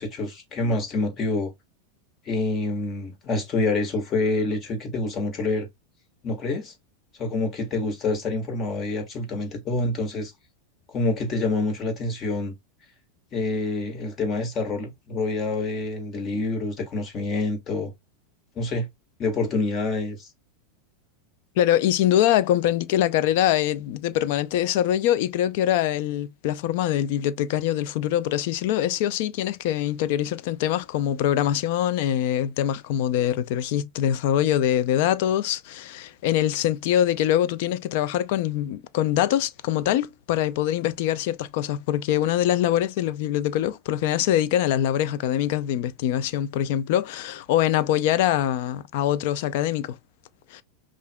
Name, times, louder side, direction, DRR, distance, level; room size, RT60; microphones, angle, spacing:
voice 1, 0.0-1.5 2.2-5.7 6.2-6.7 7.2-10.3 10.9-12.5 13.3-17.9 18.5-18.9 19.2-20.3, left 2 dB, 35° left, 1.7 m, -27 dB
voice 2, 21.6-50.0 50.5-50.6, left 11 dB, 65° left, 0.5 m, -23 dB
5.4 x 2.5 x 2.2 m
hypercardioid pair, 115°, 0 cm